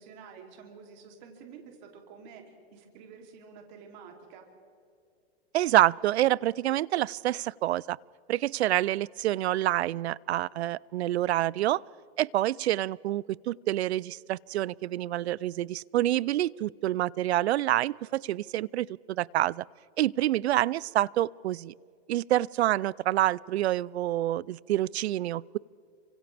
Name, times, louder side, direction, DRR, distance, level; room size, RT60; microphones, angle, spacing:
voice 1, 0.0-4.4, right 6 dB, 45° right, 2 dB, 3.1 m, -49 dB
voice 2, 5.5-8.0 8.3-11.8 12.2-19.6 20.0-21.7 22.1-25.6, right 14 dB, 80° right, 25 dB, 0.5 m, -27 dB
30.0 x 25.5 x 3.5 m, 2.4 s
hypercardioid pair, 155°, 32 cm